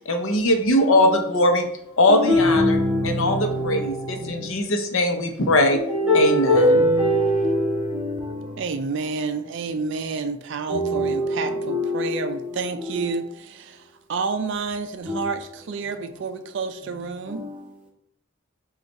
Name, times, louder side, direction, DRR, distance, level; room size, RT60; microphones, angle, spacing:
voice 1, 0.1-1.7 2.0-2.8 3.0-5.8 6.1-6.8, left 1 dB, 65° left, 0.7 m, -20 dB
voice 2, 0.8-1.2 2.1-4.3 5.7-8.5 10.7-12.4 12.8-13.0 15.1-15.3 17.3-17.5, left 1 dB, 5° right, 1.1 m, -23 dB
voice 3, 8.6-17.5, right 4 dB, 55° right, 0.3 m, -29 dB
5.2 x 2.4 x 4.2 m
head